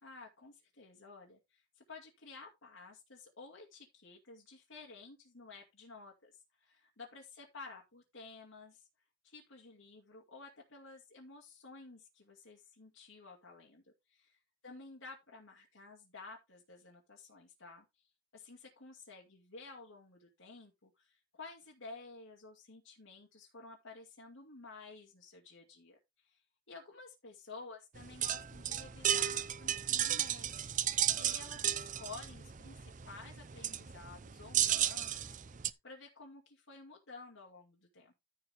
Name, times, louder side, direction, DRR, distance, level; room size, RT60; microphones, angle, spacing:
voice 1, 0.0-8.8 9.2-13.8 14.1-14.4 14.6-17.8 18.3-26.4 26.7-30.7 31.2-35.3 35.6-38.1, left 3 dB, 75° left, 2.3 m, -53 dB
sound 1, 27.9-35.7, right 11 dB, 40° right, 0.5 m, -34 dB
14.0 x 4.8 x 3.4 m
head